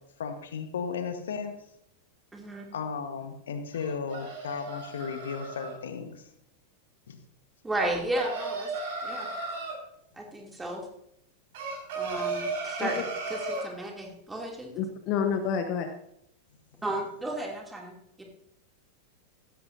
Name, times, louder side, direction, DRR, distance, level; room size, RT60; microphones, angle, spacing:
voice 1, 0.2-1.5 2.7-6.3 7.1-7.2, left 6 dB, 65° left, 7 dB, 1.3 m, -35 dB
voice 2, 2.3-2.7 7.6-8.7 9.0-9.3 10.2-10.8 12.0-14.8 16.8-18.2, right 1 dB, 10° right, 0 dB, 2.8 m, -34 dB
sound 1, 3.7-5.7 7.8-9.8 11.5-13.7, right 3 dB, 50° right, 5.5 m, -35 dB
voice 3, 14.8-15.9, left 7 dB, 40° left, 7 dB, 1.1 m, -28 dB
16.0 x 12.5 x 2.7 m, 0.76 s
figure-of-eight pair, 90°, 0 cm